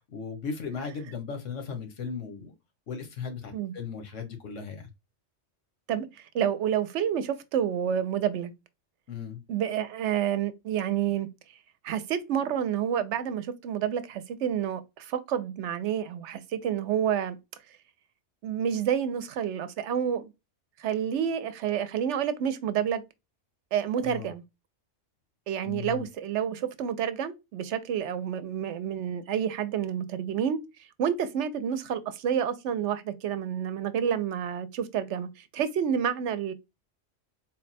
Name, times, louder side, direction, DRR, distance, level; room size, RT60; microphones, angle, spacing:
voice 1, 0.0-2.5 2.9-4.9 9.1-9.4 24.0-24.3 25.6-26.1, left 6 dB, 80° left, 1.3 m, -37 dB
voice 2, 5.9-8.5 9.5-11.3 11.8-17.4 18.4-20.3 20.8-23.0 23.7-24.4 25.5-36.5, right 9 dB, 75° right, 0.9 m, -29 dB
4.0 x 2.2 x 4.0 m
omnidirectional pair, 1.3 m